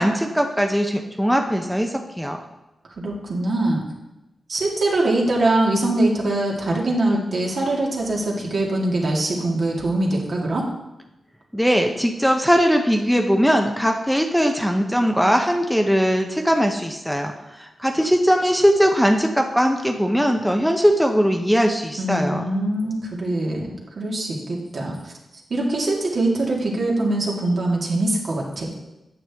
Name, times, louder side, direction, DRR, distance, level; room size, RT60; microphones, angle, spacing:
voice 1, 0.0-2.4 11.5-22.4, equal, ahead, 3 dB, 0.7 m, -20 dB
voice 2, 3.0-3.8 4.5-10.6 22.0-25.1 25.5-28.7, right 2 dB, 60° right, -2 dB, 2.0 m, -23 dB
9.0 x 6.6 x 3.5 m, 0.96 s
cardioid pair, 60°, 0 cm